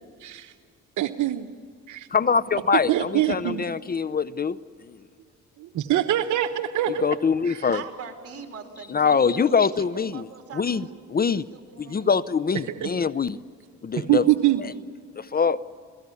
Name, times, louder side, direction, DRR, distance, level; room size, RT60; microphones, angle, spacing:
voice 1, 0.2-0.5 1.0-1.5 1.9-2.1 2.9-3.6 5.6-7.2 7.4-7.7 11.8-11.9 12.8-12.9 13.9-14.6, right 13 dB, 75° right, 7 dB, 1.0 m, -24 dB
voice 2, 2.1-4.6 4.8-5.0 7.0-7.8 8.9-10.3 10.5-11.5 11.8-13.4 13.8-14.2 14.6-14.7 15.2-15.6, left 5 dB, 30° left, 17 dB, 0.7 m, -24 dB
voice 3, 7.7-9.9 10.1-11.0 11.5-12.1 14.2-14.8, right 6 dB, 50° right, 4 dB, 3.7 m, -42 dB
29.0 x 17.5 x 8.4 m, 2.1 s
cardioid pair, 90°, 30 cm